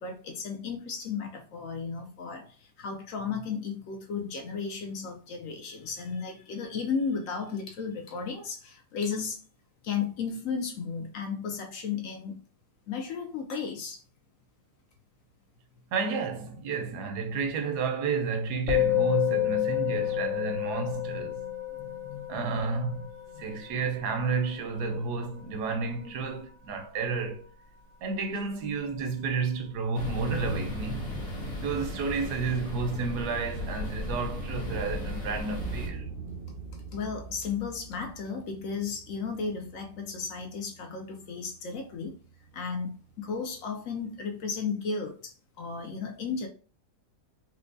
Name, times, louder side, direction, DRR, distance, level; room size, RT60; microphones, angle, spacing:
voice 1, 0.0-9.4 9.8-12.4 12.9-14.0 20.0-20.2 21.7-22.6 23.3-23.5 36.9-42.2 42.5-46.5, left 5 dB, 70° left, 0.8 m, -34 dB
voice 2, 15.9-21.5 22.3-23.1 23.4-27.5 28.0-31.1 31.6-36.1, right 4 dB, 90° right, 1.2 m, -31 dB
Musical instrument, 18.7-28.2, left 12 dB, 50° left, 1.4 m, -31 dB
sound 1, 29.9-35.9, left 1 dB, 25° left, 1.1 m, -35 dB
sound 2, 35.6-44.6, right 4 dB, 10° right, 0.6 m, -45 dB
4.4 x 2.1 x 2.6 m
omnidirectional pair, 1.7 m